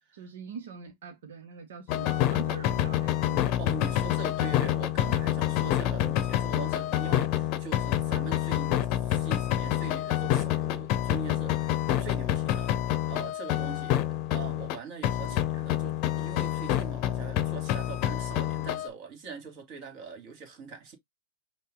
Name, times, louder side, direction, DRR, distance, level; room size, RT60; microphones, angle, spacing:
voice 1, 0.1-3.6 15.2-15.4, right 5 dB, 65° right, 1.1 m, -43 dB
sound 1, 1.9-14.8 15.0-18.9, left 13 dB, 45° left, 0.8 m, -27 dB
voice 2, 3.6-12.7 13.0-21.0, right 6 dB, 45° right, 2.3 m, -43 dB
5.5 x 2.4 x 3.7 m
hypercardioid pair, 110°, 0 cm